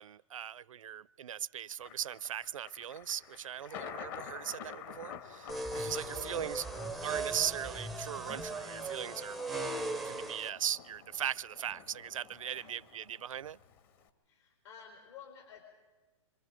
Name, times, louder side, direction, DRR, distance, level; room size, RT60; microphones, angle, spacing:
voice 1, 0.0-6.6 7.0-9.4 10.0-13.6, right 9 dB, 75° right, 0.6 m, -39 dB
Thunder, 1.8-14.1, left 8 dB, 40° left, 1.9 m, -50 dB
sound 1, 5.5-10.5, right 2 dB, ahead, 0.6 m, -38 dB
voice 2, 6.1-6.8 12.5-12.7 14.2-15.8, left 7 dB, 60° left, 4.7 m, -53 dB
26.5 x 26.0 x 5.0 m
hypercardioid pair, 135°, 17 cm